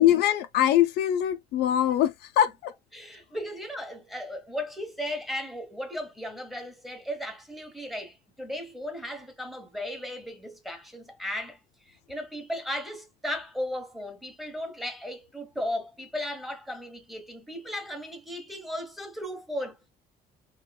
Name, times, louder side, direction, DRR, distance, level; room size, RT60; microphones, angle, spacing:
voice 1, 0.0-2.7, left 11 dB, 80° left, 0.5 m, -23 dB
voice 2, 2.9-11.6 11.9-19.9, left 1 dB, ahead, 1.0 m, -36 dB
3.1 x 2.9 x 2.2 m
cardioid pair, 110°, 17 cm